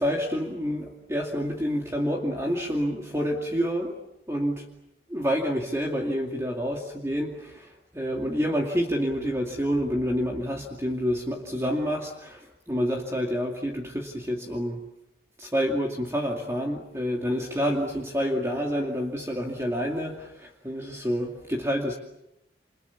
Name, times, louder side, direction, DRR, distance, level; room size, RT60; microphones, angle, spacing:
voice 1, 0.0-4.0 4.3-4.7 5.1-14.8 15.4-22.0, equal, 15° right, 0 dB, 2.4 m, -28 dB
29.0 x 28.5 x 7.2 m, 0.83 s
head